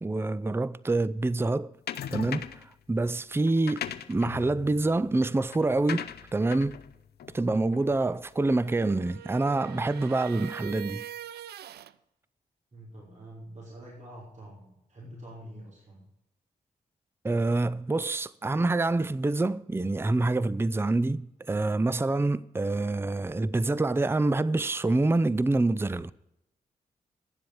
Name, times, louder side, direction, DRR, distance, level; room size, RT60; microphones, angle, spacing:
voice 1, 0.0-1.7 2.1-6.8 7.3-11.1 17.2-26.1, right 2 dB, 15° right, 0.5 m, -26 dB
sound 1, 1.9-2.7 3.5-8.2, left 9 dB, 80° left, 0.6 m, -39 dB
voice 2, 7.4-7.8 12.7-16.1, right 1 dB, 50° right, 5.1 m, -47 dB
sound 2, 8.3-11.9, right 12 dB, 85° right, 0.4 m, -43 dB
11.0 x 7.6 x 8.8 m
supercardioid pair, 45°, 16 cm